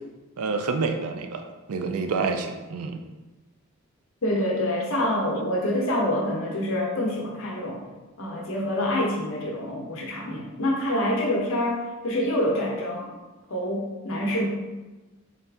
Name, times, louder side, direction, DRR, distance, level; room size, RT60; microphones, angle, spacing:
voice 1, 0.4-2.9, right 4 dB, 80° right, 6 dB, 0.4 m, -28 dB
voice 2, 4.2-7.8 8.2-13.1 13.5-14.5, left 1 dB, 65° left, -1 dB, 0.8 m, -26 dB
4.0 x 2.4 x 3.3 m, 1.1 s
head